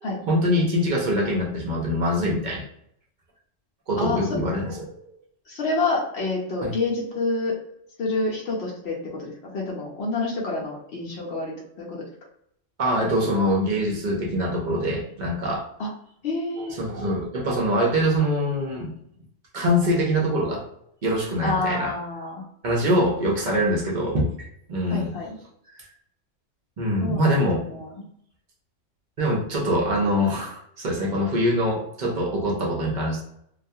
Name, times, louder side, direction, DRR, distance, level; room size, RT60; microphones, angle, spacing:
voice 1, 0.0-2.6 3.9-5.1 6.6-6.7 12.8-15.7 16.6-18.9 19.5-20.7 21.0-21.9 22.6-25.1 25.8-25.9 26.8-27.7 29.2-33.2, equal, 55° right, -2 dB, 0.5 m, -24 dB
voice 2, 5.5-7.6 8.0-12.0 15.8-15.9 16.2-16.8 21.4-22.4 24.9-25.3 27.0-27.3 27.6-28.0, left 3 dB, 60° left, -2 dB, 0.8 m, -28 dB
2.3 x 2.2 x 2.6 m, 0.71 s
omnidirectional pair, 1.4 m